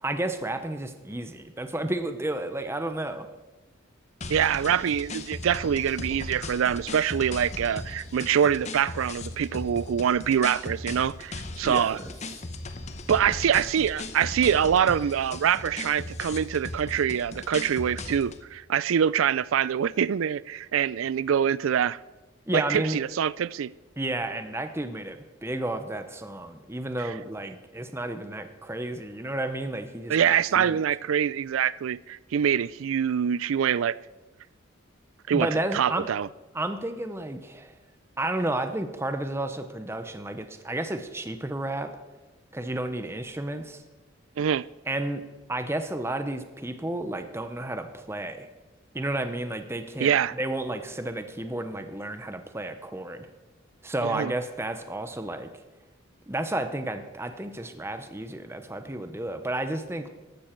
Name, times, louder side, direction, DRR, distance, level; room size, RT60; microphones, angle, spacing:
voice 1, 0.0-3.3 11.6-12.1 22.5-23.0 24.0-30.8 35.3-36.1 36.5-37.7 38.2-42.0 42.5-43.8 44.9-45.2 45.5-48.5 48.9-50.1 50.4-53.3 53.8-55.5 56.3-60.1, right 1 dB, 10° right, 0.7 m, -32 dB
sound 1, 4.2-18.4, left 2 dB, 35° left, 0.8 m, -38 dB
voice 2, 4.3-12.0 13.1-22.0 22.5-23.7 27.0-27.1 30.1-34.0 35.3-36.3 44.4-44.6 50.0-50.3 54.0-54.3, right 8 dB, 80° right, 0.4 m, -25 dB
14.5 x 11.5 x 4.5 m
head